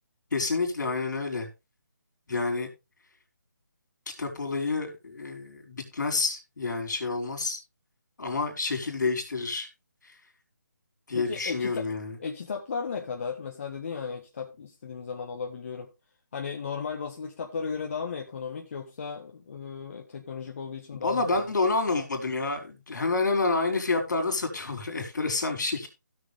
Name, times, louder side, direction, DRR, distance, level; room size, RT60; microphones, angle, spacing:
voice 1, 0.3-1.5 2.3-2.7 4.2-7.6 8.2-9.7 11.1-12.1 20.9-25.9, left 3 dB, 65° left, 4.4 m, -28 dB
voice 2, 11.1-11.9 12.2-15.9 16.3-21.5, left 5 dB, 40° left, 1.4 m, -35 dB
16.5 x 6.7 x 3.4 m
figure-of-eight pair, 165°, 11 cm